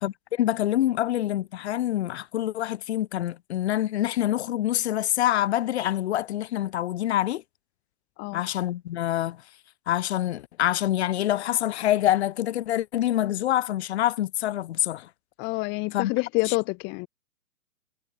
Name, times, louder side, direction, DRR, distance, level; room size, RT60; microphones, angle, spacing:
voice 1, 0.0-7.4 8.3-9.4 9.9-15.1 15.9-16.1 16.5-16.6, left 13 dB, 40° left, 3.3 m, -26 dB
voice 2, 15.4-17.1, left 28 dB, 20° left, 2.0 m, -27 dB
figure-of-eight pair, 130°, 48 cm